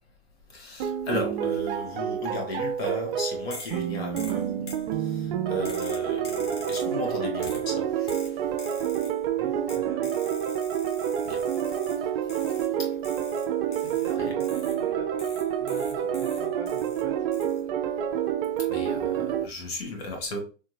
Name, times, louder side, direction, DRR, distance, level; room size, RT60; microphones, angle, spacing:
voice 1, 0.5-4.7 5.0-8.1 11.2-11.4 12.8-12.9 14.2-14.3 18.7-20.4, left 2 dB, 60° left, 1.7 m, -35 dB
sound 1, 0.8-19.4, right 9 dB, 55° right, 0.5 m, -28 dB
sound 2, 3.5-3.8 4.2-4.9 5.6-7.0 7.4-7.7 8.1-9.2 9.7-12.0 12.3-12.7 13.0-14.8 15.2-17.0 17.3-17.6, left 2 dB, 85° left, 1.3 m, -44 dB
voice 2, 9.3-10.1 13.7-17.3, right 4 dB, 10° right, 1.1 m, -45 dB
3.4 x 2.7 x 3.1 m
hypercardioid pair, 115°, 35 cm